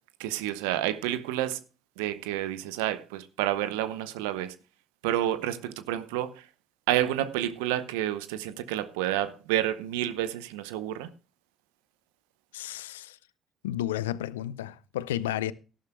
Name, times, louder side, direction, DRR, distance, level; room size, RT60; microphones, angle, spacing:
voice 1, 0.2-1.6 2.0-4.5 5.0-6.5 6.9-11.1, right 13 dB, 80° right, 0.7 m, -29 dB
voice 2, 12.5-13.2 13.6-15.5, left 13 dB, 85° left, 0.4 m, -32 dB
18.0 x 11.0 x 2.2 m
hypercardioid pair, 50°, 0 cm